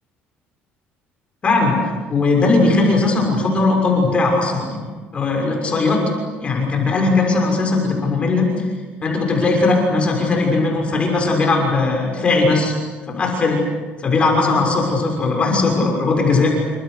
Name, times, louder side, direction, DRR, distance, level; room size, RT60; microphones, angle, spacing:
voice 1, 1.4-1.8 2.1-4.8 5.1-6.0 6.4-8.6 9.0-12.7 13.1-13.6 14.0-16.5, left 3 dB, 30° left, 1 dB, 6.2 m, -18 dB
29.0 x 26.5 x 6.7 m, 1.4 s
cardioid pair, 140°, 4 cm